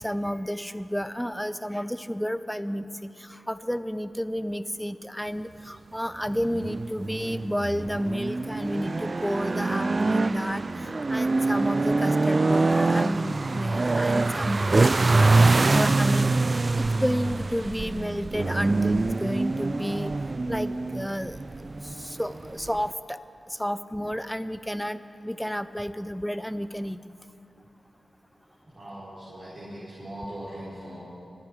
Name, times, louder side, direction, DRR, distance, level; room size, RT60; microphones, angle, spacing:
voice 1, 0.0-20.1 20.5-23.2 23.5-27.1, equal, 5° left, 13 dB, 0.6 m, -31 dB
sound 1, 6.3-22.9, right 3 dB, 45° right, 0.3 m, -25 dB
voice 2, 28.7-31.0, right 1 dB, 65° right, -11 dB, 4.0 m, -40 dB
25.5 x 9.7 x 4.9 m, 2.8 s
cardioid pair, 50°, 0 cm